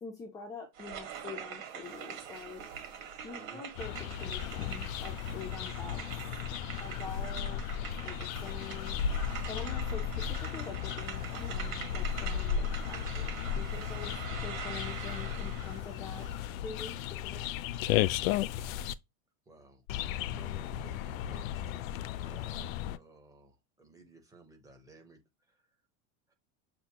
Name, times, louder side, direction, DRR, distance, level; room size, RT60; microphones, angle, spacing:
voice 1, 0.0-2.7 3.2-6.0 6.8-7.6 8.0-9.0 9.5-16.3 16.6-17.4, left 5 dB, 10° left, 0.3 m, -45 dB
sound 1, 0.7-15.8, right 8 dB, 85° right, 1.9 m, -44 dB
sound 2, 1.8-17.1, right 4 dB, 30° right, 3.4 m, -60 dB
sound 3, 3.8-18.9 19.9-23.0, left 9 dB, 90° left, 0.5 m, -35 dB
voice 2, 19.5-19.8 20.3-25.2 25.5-25.6 26.3-26.4, right 2 dB, 10° right, 0.8 m, -55 dB
6.9 x 2.6 x 2.8 m
supercardioid pair, 160°, 39 cm